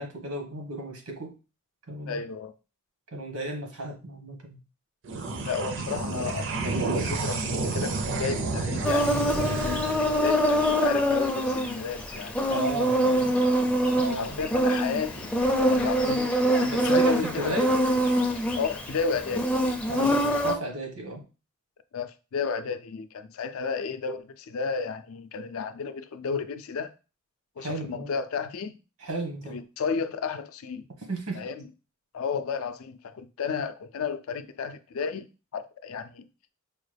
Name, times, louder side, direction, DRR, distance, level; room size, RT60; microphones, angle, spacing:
voice 1, 0.0-1.3 1.9-2.2 3.1-4.6 9.4-9.8 12.5-13.4 14.0-14.4 16.7-17.7 19.9-21.2 27.6-28.1 29.0-29.6 31.1-31.4, right 1 dB, 90° right, 1.2 m, -34 dB
voice 2, 2.0-2.5 5.4-9.9 10.1-12.4 14.2-15.4 15.7-17.6 18.6-19.5 21.9-26.9 27.6-28.7 29.5-30.8 31.3-31.6 32.1-35.3 35.5-36.3, left 5 dB, 70° left, 0.4 m, -32 dB
sound 1, 5.0-11.8, right 3 dB, 60° right, 0.5 m, -31 dB
Insect, 8.8-20.5, equal, 5° left, 0.4 m, -24 dB
4.8 x 2.2 x 3.3 m
head